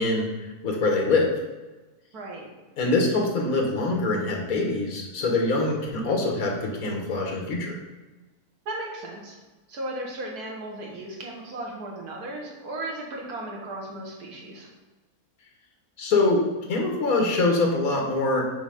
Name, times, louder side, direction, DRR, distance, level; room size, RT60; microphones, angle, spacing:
voice 1, 0.0-1.3 2.8-7.7 16.0-18.4, left 2 dB, 65° left, 0 dB, 1.6 m, -24 dB
voice 2, 2.1-2.5 8.7-9.4 9.7-14.7, right 1 dB, 75° right, -1 dB, 1.8 m, -36 dB
6.3 x 3.4 x 4.9 m, 1.2 s
omnidirectional pair, 1.6 m